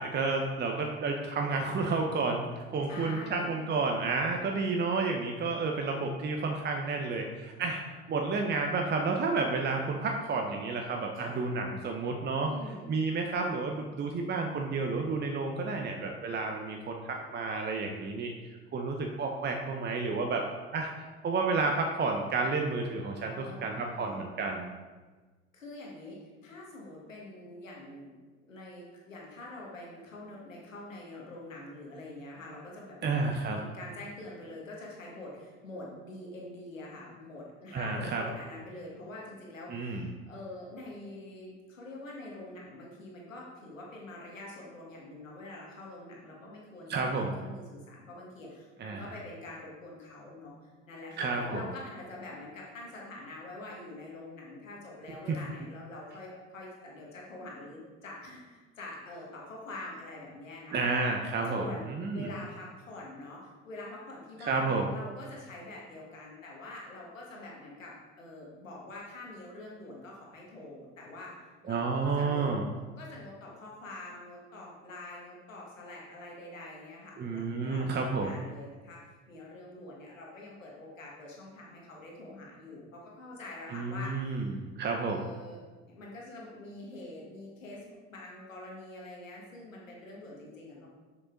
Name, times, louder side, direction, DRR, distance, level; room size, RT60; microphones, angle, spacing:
voice 1, 0.0-7.8 8.1-12.5 12.9-18.3 18.7-20.4 20.7-24.7 33.0-33.6 37.7-38.2 39.7-40.1 46.9-47.3 48.8-49.1 51.2-51.7 55.3-55.4 60.7-62.3 64.4-64.9 71.7-72.6 77.2-78.3 83.7-85.2, right 3 dB, 25° right, 2 dB, 0.9 m, -31 dB
voice 2, 2.8-3.5 11.1-11.4 12.5-12.9 23.2-24.2 25.5-28.1 28.4-33.2 33.7-60.9 61.5-72.5 73.0-84.6 85.0-85.6 85.9-90.9, left 2 dB, 85° left, -3 dB, 1.7 m, -45 dB
7.0 x 7.0 x 3.9 m, 1.3 s
figure-of-eight pair, 70°, 38 cm